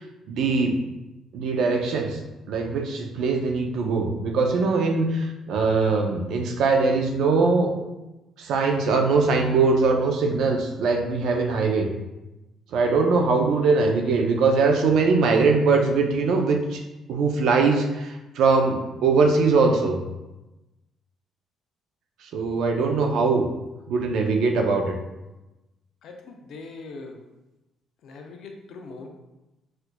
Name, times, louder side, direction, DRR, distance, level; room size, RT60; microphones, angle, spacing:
voice 1, 0.3-0.7 1.3-2.2 2.5-7.7 8.4-11.9 12.7-16.8 17.1-20.0 22.3-23.5 23.9-25.0, right 4 dB, 75° right, 3 dB, 0.4 m, -21 dB
voice 2, 26.0-27.2 28.0-29.1, left 3 dB, 65° left, 3 dB, 0.4 m, -41 dB
4.3 x 2.4 x 2.2 m, 1.0 s
cardioid pair, 135°, 0 cm